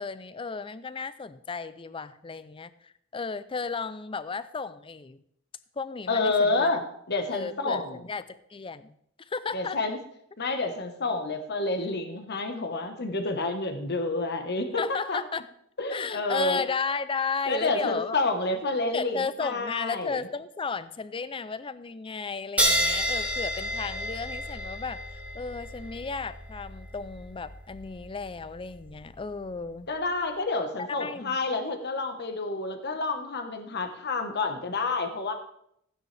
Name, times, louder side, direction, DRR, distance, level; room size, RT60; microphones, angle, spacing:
voice 1, 0.0-5.2 5.8-6.8 7.3-9.8 14.8-15.4 15.9-18.2 18.9-29.9 31.0-31.4, left 5 dB, 25° left, 15 dB, 0.5 m, -34 dB
voice 2, 6.1-8.0 9.5-10.0 10.4-15.2 15.8-16.6 17.5-20.3 29.9-35.3, left 3 dB, 55° left, 6 dB, 1.3 m, -29 dB
sound 1, 22.6-29.6, equal, 5° right, 1.7 m, -31 dB
15.0 x 9.9 x 3.4 m, 0.72 s
head